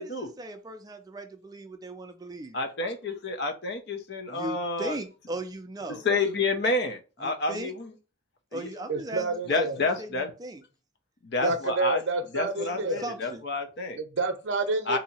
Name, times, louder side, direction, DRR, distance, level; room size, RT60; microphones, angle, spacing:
voice 1, 0.0-2.6 4.3-6.0 7.2-7.7 8.5-10.6 11.4-11.5 12.8-13.4, right 1 dB, 20° right, 0.4 m, -38 dB
voice 2, 2.5-5.0 6.0-7.9 8.5-8.7 9.5-10.3 11.2-12.0 12.3-14.0 14.9-15.0, left 3 dB, 55° left, 0.6 m, -29 dB
voice 3, 8.9-9.8 11.4-13.0 14.0-15.0, right 3 dB, 65° right, 0.6 m, -28 dB
2.7 x 2.7 x 4.2 m
head